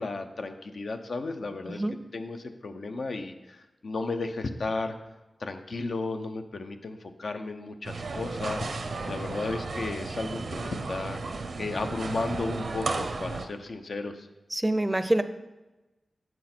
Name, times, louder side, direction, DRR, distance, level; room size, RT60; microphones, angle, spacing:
voice 1, 0.0-1.8 2.1-5.0 5.4-8.7 9.1-14.3, left 3 dB, 70° left, 7 dB, 0.6 m, -34 dB
sound 1, 7.8-13.5, right 3 dB, 75° right, 0.6 m, -34 dB
voice 2, 14.5-15.2, right 1 dB, 15° right, 11 dB, 0.5 m, -26 dB
7.6 x 6.1 x 4.4 m, 1.1 s
wide cardioid pair, 85°, 0 cm